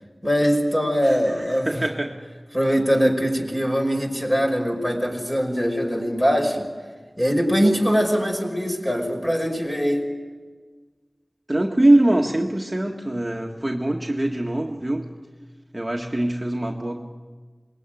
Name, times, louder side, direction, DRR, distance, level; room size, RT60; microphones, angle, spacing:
voice 1, 0.2-1.8 2.5-6.7 7.2-10.1, equal, 15° left, 2 dB, 5.6 m, -22 dB
voice 2, 1.0-2.2 11.5-15.1 15.7-17.0, right 1 dB, 20° right, 0 dB, 1.8 m, -23 dB
27.0 x 21.0 x 9.2 m, 1.5 s
wide cardioid pair, 60°, 0 cm